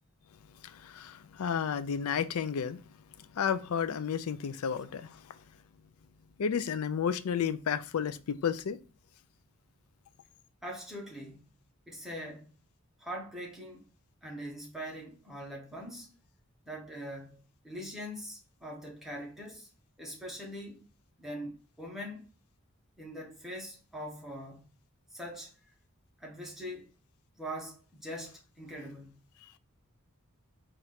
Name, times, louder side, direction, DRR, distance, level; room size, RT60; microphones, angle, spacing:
voice 1, 0.6-2.8 3.2-5.1 6.4-8.8, left 7 dB, 85° left, 0.4 m, -32 dB
voice 2, 10.6-11.5 11.9-12.5 13.0-13.9 14.2-16.1 16.7-19.7 20.0-20.9 21.2-22.3 23.0-24.7 25.1-25.5 26.2-26.9 27.4-29.2, equal, ahead, 1.1 m, -42 dB
4.4 x 2.5 x 4.2 m
head